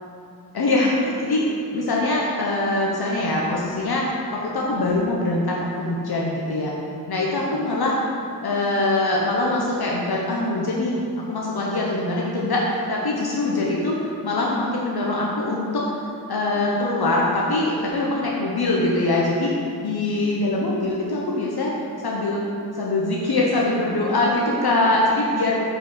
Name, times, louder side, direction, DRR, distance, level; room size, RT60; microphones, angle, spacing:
voice 1, 0.5-1.4 1.7-4.1 4.3-6.7 7.1-7.9 8.4-14.0 14.2-15.9 16.3-19.5 19.8-21.7 22.0-22.4 22.7-25.6, left 2 dB, 70° left, -3 dB, 1.0 m, -23 dB
8.6 x 4.6 x 4.5 m, 2.4 s
wide cardioid pair, 70°, 39 cm